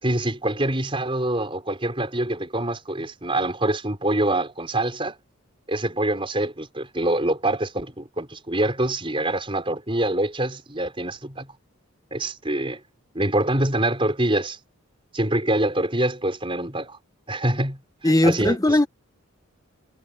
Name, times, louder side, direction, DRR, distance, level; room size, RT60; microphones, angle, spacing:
voice 1, 0.0-5.2 5.7-11.5 12.1-12.8 13.1-14.6 15.1-17.0 17.3-18.8, right 1 dB, 25° right, 5.2 m, -25 dB
voice 2, 18.0-18.9, left 1 dB, 15° left, 0.9 m, -18 dB
head